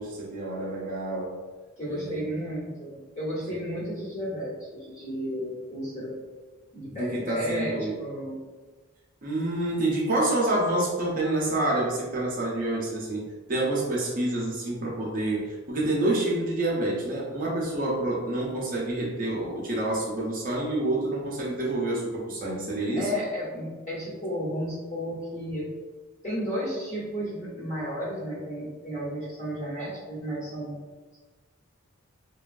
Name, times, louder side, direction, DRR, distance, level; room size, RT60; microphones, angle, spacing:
voice 1, 0.0-1.4 1.8-2.3 3.5-3.6 7.0-8.0 9.2-13.2 13.5-23.1, right 2 dB, 40° right, -4 dB, 0.6 m, -28 dB
voice 2, 1.8-6.1 6.7-8.4 23.0-25.6 26.2-30.8, equal, 35° left, -9 dB, 1.2 m, -33 dB
3.0 x 2.2 x 2.4 m, 1.3 s
head